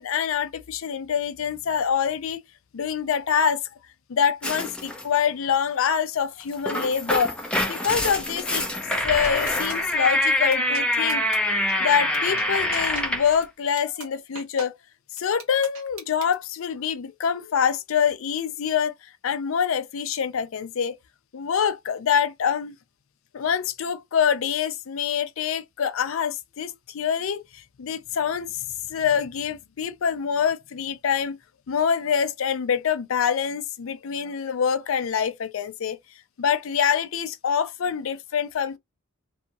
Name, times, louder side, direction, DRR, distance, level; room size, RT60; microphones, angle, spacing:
voice 1, 0.0-2.4 2.7-3.6 4.1-7.4 7.7-8.6 9.0-11.2 11.8-14.7 15.2-18.9 19.2-21.0 21.3-22.8 23.3-31.4 31.7-36.0 36.4-38.8, left 7 dB, 70° left, 0.4 m, -25 dB
sound 1, 4.4-5.1 6.4-13.3, left 1 dB, 5° left, 0.5 m, -25 dB
sound 2, 9.2-9.9 10.5-10.8 11.1-11.4 11.7-11.8 12.1-12.4 12.7-13.0 13.4-13.5 13.8-14.1 14.3-14.7 15.2-16.3, right 5 dB, 75° right, 1.0 m, -38 dB
2.7 x 2.3 x 2.7 m
head